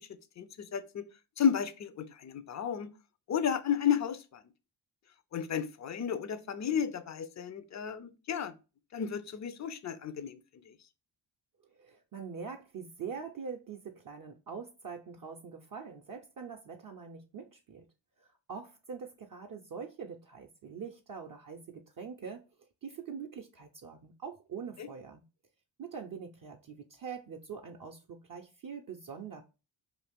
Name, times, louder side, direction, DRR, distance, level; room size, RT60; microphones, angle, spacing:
voice 1, 0.4-1.0 1.4-2.9 3.3-4.4 5.3-8.5 8.9-10.4 10.7-10.8 24.8-24.9, left 8 dB, 35° left, 0.5 m, -32 dB
voice 2, 11.7-17.9 18.2-25.2 25.8-29.4, right 6 dB, 45° right, 0.5 m, -44 dB
2.6 x 2.4 x 3.4 m
cardioid pair, 55°, 49 cm